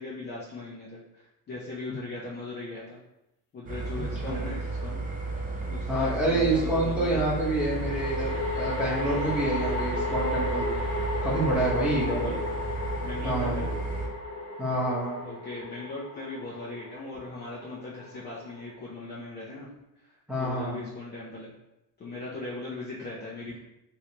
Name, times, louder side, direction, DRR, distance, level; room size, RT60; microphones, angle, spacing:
voice 1, 0.0-3.0 3.5-5.0 5.7-7.2 9.8-9.9 11.9-12.4 13.0-13.8 15.2-19.7 20.0-21.5 22.0-23.6, left 2 dB, 25° left, -6 dB, 0.6 m, -39 dB
sound 1, 3.7-14.1, right 3 dB, 20° right, 0.4 m, -33 dB
voice 2, 3.9-4.4 5.9-10.7 11.2-12.3 13.2-13.6 14.6-15.2 20.3-20.8, right 1 dB, 5° right, -7 dB, 1.0 m, -27 dB
sound 2, 4.4-4.5 7.4-18.7, left 2 dB, 85° left, 1.0 m, -35 dB
3.1 x 3.1 x 2.8 m, 0.90 s
cardioid pair, 140°, 39 cm